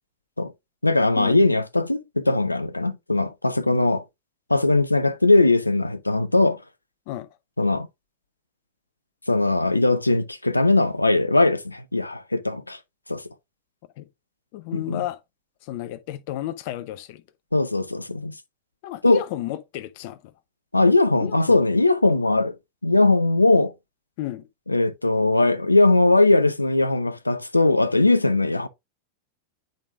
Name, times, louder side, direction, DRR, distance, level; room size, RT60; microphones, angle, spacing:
voice 1, 0.8-4.0 4.5-6.6 7.6-7.9 9.3-12.8 13.1-13.2 14.7-15.0 17.5-18.3 19.0-19.2 20.7-22.5 22.8-23.7 24.7-28.7, left 2 dB, 85° left, 0.6 m, -20 dB
voice 2, 14.5-15.2 15.6-17.2 18.8-20.3 21.2-21.6 24.2-24.5, left 13 dB, 50° left, 0.8 m, -32 dB
9.0 x 5.1 x 2.4 m
figure-of-eight pair, 90°, 0 cm